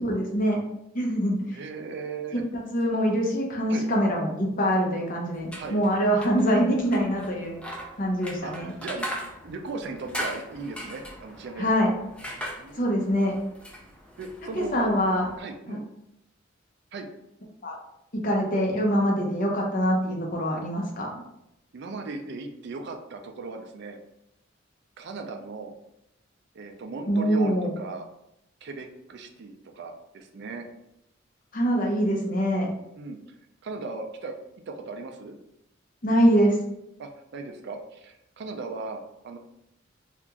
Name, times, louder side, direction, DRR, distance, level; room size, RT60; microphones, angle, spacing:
voice 1, 0.0-0.6 0.9-1.6 2.3-7.5 8.0-8.7 11.6-11.9 12.8-13.3 14.6-15.3 15.7-15.8 17.6-17.8 18.2-21.1 27.1-27.7 31.5-32.7 36.0-36.6, equal, 45° left, -1 dB, 0.8 m, -24 dB
voice 2, 1.5-2.4 3.7-3.9 5.6-5.8 8.4-9.1 9.4-11.9 12.6-12.9 14.2-15.1 15.4-15.8 16.9-17.1 21.7-24.0 25.0-25.7 26.5-28.1 28.6-30.7 33.0-33.2 33.6-34.3 34.7-35.4 37.0-39.4, right 3 dB, 60° right, 4 dB, 0.4 m, -37 dB
sound 1, 5.3-15.4, equal, 5° left, 0.4 m, -40 dB
2.9 x 2.5 x 3.5 m, 0.82 s
head